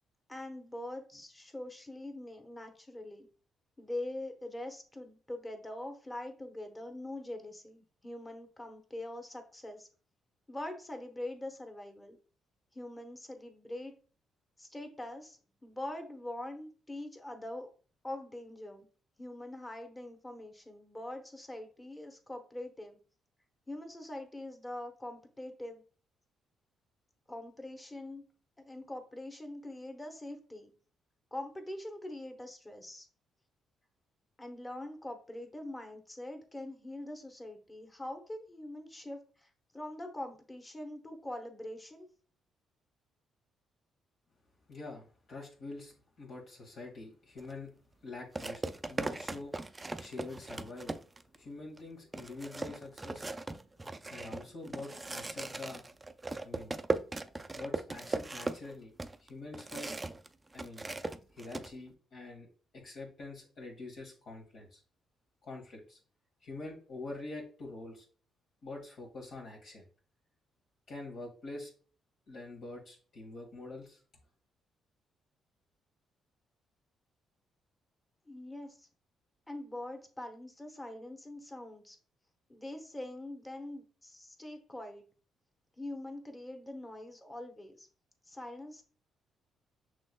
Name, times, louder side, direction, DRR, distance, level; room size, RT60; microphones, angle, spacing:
voice 1, 0.3-3.3 3.8-9.9 10.5-12.2 12.7-13.9 14.6-17.7 18.0-18.9 19.2-23.0 23.7-25.8 27.3-28.2 28.6-30.7 31.3-33.1 34.4-42.1 78.3-78.9 79.5-82.0 82.5-85.0 85.8-87.9 88.2-88.8, left 1 dB, 15° left, 4 dB, 1.0 m, -43 dB
voice 2, 44.7-47.7 48.0-48.6 48.9-51.0 51.3-53.3 54.1-55.8 56.4-56.8 57.5-58.9 59.2-59.9 60.5-60.9 61.3-62.5 62.7-64.8 65.4-66.0 66.4-68.0 68.6-69.9 70.9-71.7 72.3-74.0, left 2 dB, 65° left, -2 dB, 1.4 m, -45 dB
sound 1, 47.4-47.5 48.4-51.4 51.8-51.9 52.1-60.3 60.5-61.7, right 2 dB, 20° right, 0.3 m, -38 dB
6.1 x 3.1 x 2.2 m, 0.40 s
cardioid pair, 90°, 0 cm